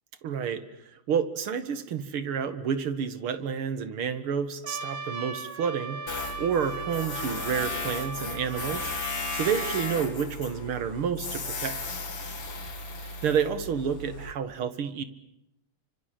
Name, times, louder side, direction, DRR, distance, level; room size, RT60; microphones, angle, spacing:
voice 1, 0.2-0.6 1.1-6.0 6.4-8.9 9.3-11.8 13.2-15.0, right 7 dB, 75° right, 12 dB, 2.6 m, -29 dB
Trumpet, 4.6-10.0, right 4 dB, 40° right, 2.1 m, -38 dB
Tools, 6.1-14.3, left 3 dB, 80° left, 3.9 m, -35 dB
30.0 x 25.5 x 7.7 m, 0.81 s
omnidirectional pair, 2.4 m